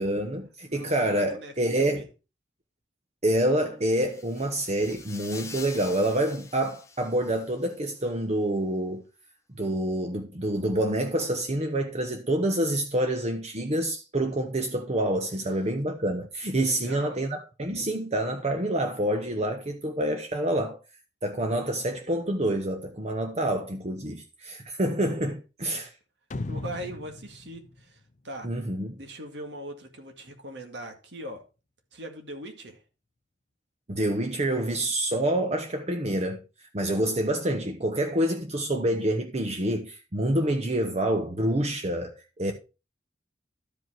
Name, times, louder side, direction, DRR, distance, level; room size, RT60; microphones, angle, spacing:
voice 1, 0.0-2.1 3.2-9.0 9.5-20.8 21.2-25.9 28.4-29.0 33.9-36.4 36.7-42.5, right 1 dB, 35° right, 0.9 m, -27 dB
voice 2, 0.7-2.1 16.6-17.2 25.7-25.8 26.5-28.5 29.0-31.4 31.9-32.8 42.5-42.6, right 1 dB, 75° right, 2.0 m, -41 dB
sound 1, 3.9-7.8, left 4 dB, 15° left, 1.1 m, -45 dB
sound 2, 26.3-28.8, left 2 dB, 45° left, 0.5 m, -37 dB
12.5 x 5.3 x 4.5 m
head